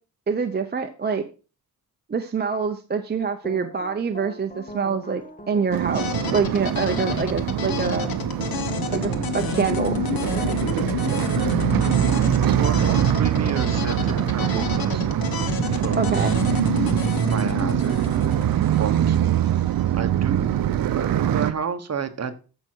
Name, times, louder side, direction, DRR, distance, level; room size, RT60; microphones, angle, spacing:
voice 1, 0.3-1.2 2.1-8.1 8.9-10.0 16.0-16.3, right 5 dB, 25° right, 6 dB, 0.8 m, -25 dB
sound 1, 3.4-14.7, right 1 dB, 20° left, 1.8 m, -40 dB
sound 2, 5.7-21.5, right 11 dB, 70° right, 0.7 m, -23 dB
sound 3, 5.9-19.8, left 7 dB, 70° left, 1.4 m, -30 dB
voice 2, 12.5-16.4 17.3-18.0 18.8-19.2 19.9-22.3, right 6 dB, 45° right, 8 dB, 1.3 m, -31 dB
14.0 x 5.9 x 4.6 m, 0.35 s
wide cardioid pair, 140°, 37 cm